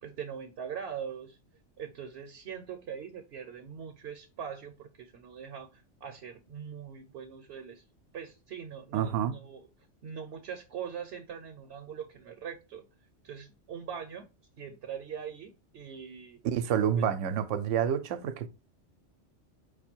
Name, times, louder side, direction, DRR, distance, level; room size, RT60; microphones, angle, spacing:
voice 1, 0.0-1.4 1.8-7.8 8.1-9.7 10.0-12.8 13.2-14.3 14.6-16.4 17.0-17.1, right 7 dB, 65° right, 0.9 m, -42 dB
voice 2, 8.9-9.4 16.5-18.5, right 8 dB, 90° right, 0.9 m, -28 dB
5.4 x 2.2 x 4.3 m
omnidirectional pair, 1.2 m